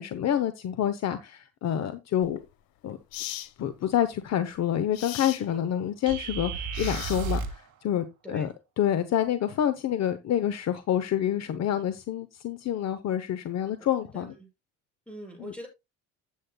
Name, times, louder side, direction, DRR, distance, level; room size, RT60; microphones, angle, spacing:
voice 1, 0.0-2.4 2.8-3.0 3.6-14.3 15.4-15.5, left 10 dB, 50° left, 11 dB, 0.9 m, -28 dB
sound 1, 2.2-2.4 3.1-3.5 4.9-5.4 6.7-7.5, left 14 dB, 75° left, 1.2 m, -37 dB
sound 2, 6.1-7.7, right 5 dB, 60° right, 2.6 m, -32 dB
voice 2, 14.1-14.5 15.1-15.7, equal, 5° left, 0 dB, 7.1 m, -42 dB
14.5 x 8.5 x 2.3 m, 0.25 s
cardioid pair, 120°, 35 cm